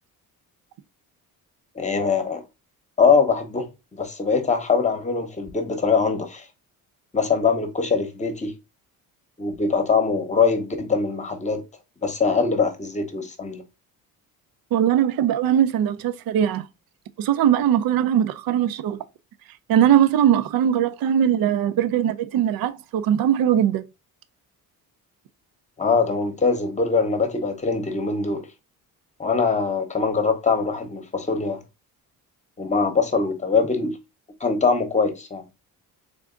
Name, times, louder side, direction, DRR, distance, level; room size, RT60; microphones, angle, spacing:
voice 1, 1.7-2.4 3.0-6.4 7.1-8.5 9.4-11.6 12.0-13.6 25.8-28.5 29.2-31.6 32.6-34.0 34.4-35.4, left 5 dB, 20° left, 0.9 m, -22 dB
voice 2, 14.7-16.7 17.2-19.0 19.7-23.9, right 10 dB, 70° right, 0.6 m, -20 dB
3.7 x 3.4 x 3.7 m
cardioid pair, 130°, 36 cm